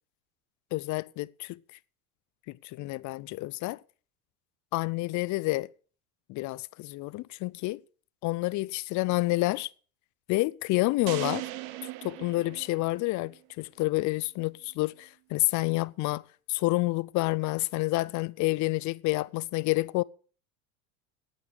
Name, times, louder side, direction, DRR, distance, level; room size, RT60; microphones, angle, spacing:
voice 1, 0.7-1.6 2.5-3.8 4.7-5.7 6.3-7.8 8.2-9.7 10.3-11.4 12.0-16.2 16.5-20.0, left 21 dB, 45° left, 0.5 m, -29 dB
sound 1, 11.1-13.4, right 16 dB, 60° right, 1.1 m, -38 dB
9.5 x 9.0 x 6.6 m
supercardioid pair, 105°, 43 cm